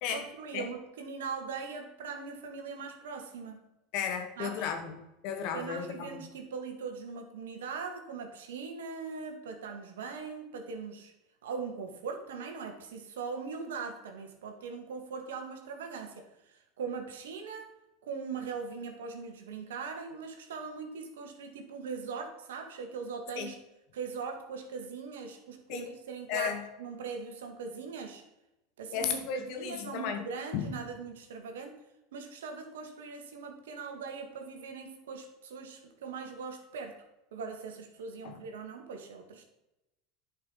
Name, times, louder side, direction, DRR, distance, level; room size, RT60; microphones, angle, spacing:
voice 1, 0.1-3.6 4.4-4.7 5.5-11.1 11.4-17.7 18.0-23.6 23.9-28.2 28.8-31.8 32.1-37.0 37.3-39.4, right 5 dB, 80° right, 5 dB, 1.9 m, -40 dB
voice 2, 3.9-5.0 5.2-6.2 23.4-23.5 25.7-25.9 26.3-26.6 28.9-30.2 30.5-30.7 38.2-38.4, left 7 dB, 60° left, 5 dB, 1.9 m, -34 dB
10.5 x 5.5 x 5.5 m, 0.93 s
hypercardioid pair, 90°, 0 cm